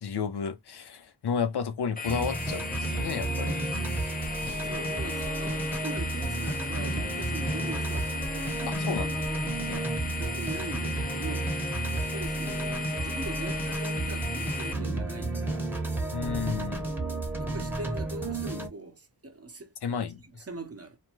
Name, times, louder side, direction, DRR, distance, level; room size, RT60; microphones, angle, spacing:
voice 1, 0.0-3.8 4.4-4.7 8.7-9.2 9.6-9.8 16.1-16.8 19.8-20.4, left 6 dB, 85° left, 0.6 m, -32 dB
sound 1, 2.0-14.7, left 4 dB, 25° left, 0.4 m, -36 dB
sound 2, 2.0-18.7, right 2 dB, 5° right, 0.8 m, -32 dB
voice 2, 4.6-9.3 9.7-9.9 10.2-11.5 11.9-15.7 16.2-16.9 17.4-20.1 20.5-21.0, right 3 dB, 35° right, 0.7 m, -42 dB
2.5 x 2.2 x 2.9 m
wide cardioid pair, 75°, 39 cm